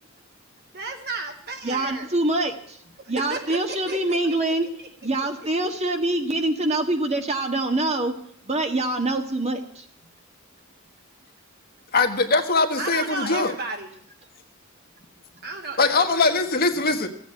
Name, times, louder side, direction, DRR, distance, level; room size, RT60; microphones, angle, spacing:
voice 1, 0.7-2.1 3.0-4.4 4.8-4.9 12.8-14.0 15.4-16.2, right 2 dB, 50° right, 3 dB, 2.7 m, -34 dB
voice 2, 1.6-2.8 3.1-4.7 5.0-8.2 8.4-9.8, right 2 dB, 30° right, 5 dB, 1.7 m, -25 dB
voice 3, 11.9-13.5 15.8-17.1, left 3 dB, 45° left, 6 dB, 1.4 m, -21 dB
15.5 x 8.5 x 8.9 m, 0.67 s
head